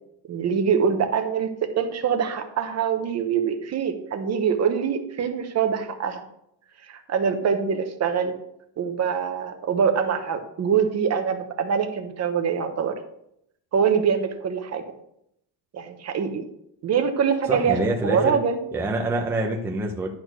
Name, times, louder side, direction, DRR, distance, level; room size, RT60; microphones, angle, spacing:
voice 1, 0.3-6.2 6.9-8.3 8.8-13.0 13.7-14.8 15.7-16.4 16.8-17.8 18.0-18.6, right 7 dB, 35° right, 6 dB, 1.0 m, -24 dB
voice 2, 17.5-18.4 18.7-20.1, right 2 dB, 5° right, 1 dB, 0.7 m, -26 dB
11.0 x 4.4 x 6.1 m, 0.76 s
cardioid pair, 155°, 47 cm